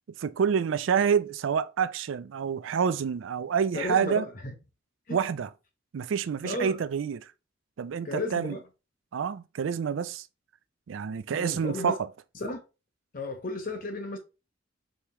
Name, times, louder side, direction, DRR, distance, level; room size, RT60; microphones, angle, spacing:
voice 1, 0.2-4.3 5.1-5.5 5.9-7.3 7.8-8.6 9.1-10.3 10.9-12.1, right 7 dB, 85° right, 0.4 m, -28 dB
voice 2, 3.7-4.5 5.1-5.2 6.4-6.8 8.0-8.6 11.3-12.0 12.4-12.6 13.1-14.2, left 2 dB, 45° left, 1.0 m, -34 dB
5.1 x 3.1 x 2.8 m
head